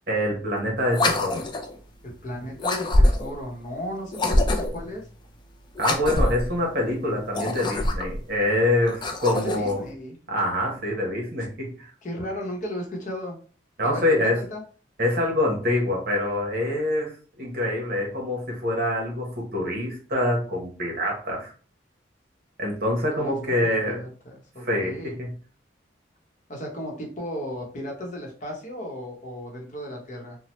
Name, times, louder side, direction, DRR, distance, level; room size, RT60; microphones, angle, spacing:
voice 1, 0.1-1.4 5.8-9.8 10.3-11.9 13.8-14.4 15.0-17.1 17.4-21.5 22.6-24.0 24.6-25.3, left 1 dB, 55° right, -1 dB, 1.0 m, -25 dB
sound 1, 0.9-1.8 2.6-3.4 4.1-4.9 5.8-6.5 7.2-8.2 8.8-9.7, left 1 dB, 25° left, 0.3 m, -24 dB
voice 2, 2.0-5.1 9.3-10.1 12.0-13.4 13.8-14.6 23.1-23.3 23.6-25.2 26.5-30.4, equal, 40° left, 0 dB, 0.8 m, -35 dB
2.9 x 2.1 x 3.0 m, 0.39 s
head